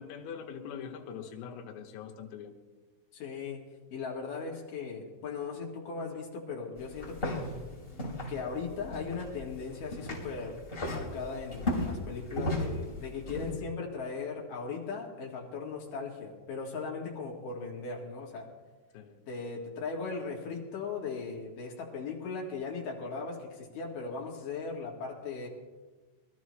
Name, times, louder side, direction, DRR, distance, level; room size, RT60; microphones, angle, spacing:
voice 1, 0.0-2.6 18.9-19.2, left 7 dB, 80° left, 3 dB, 3.7 m, -43 dB
voice 2, 3.1-3.6 3.9-7.4 8.3-18.5 19.3-25.5, left 4 dB, 50° left, -1 dB, 2.9 m, -38 dB
sound 1, 6.8-13.5, left 1 dB, 15° left, 2.2 m, -36 dB
23.0 x 14.0 x 3.1 m, 1.3 s
omnidirectional pair, 6.0 m